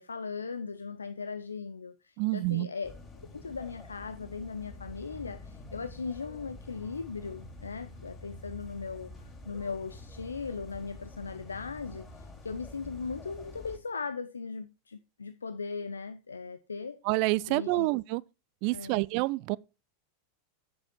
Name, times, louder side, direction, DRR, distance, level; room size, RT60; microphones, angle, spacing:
voice 1, 0.0-9.1 9.5-17.0 17.5-17.9 18.7-19.1, left 5 dB, 90° left, 0.6 m, -38 dB
voice 2, 2.2-2.7 17.0-18.2 18.6-19.6, right 21 dB, 55° right, 0.4 m, -28 dB
sound 1, 2.8-13.8, left 2 dB, 25° left, 4.2 m, -47 dB
8.3 x 7.0 x 4.4 m
hypercardioid pair, 95°, 0 cm